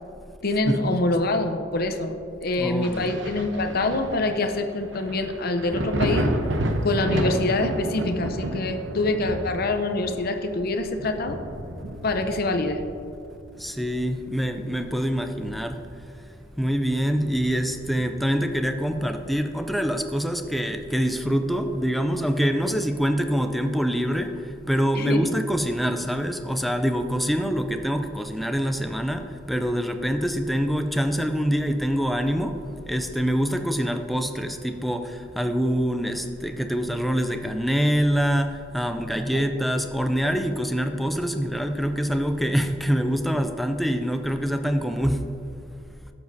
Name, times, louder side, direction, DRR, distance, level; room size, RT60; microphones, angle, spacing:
voice 1, 0.4-2.1 2.4-6.3 6.8-11.4 12.0-12.8 24.9-25.3 39.3-39.4, left 2 dB, 50° left, 6 dB, 0.6 m, -25 dB
voice 2, 2.6-3.1 13.6-15.8 16.6-45.3, equal, ahead, 6 dB, 0.4 m, -25 dB
Thunder, 2.8-14.2 14.6-16.1 16.4-16.5 17.1-18.4 19.8-19.9, right 1 dB, 70° right, 0.8 m, -31 dB
12.5 x 7.1 x 2.7 m, 2.6 s
head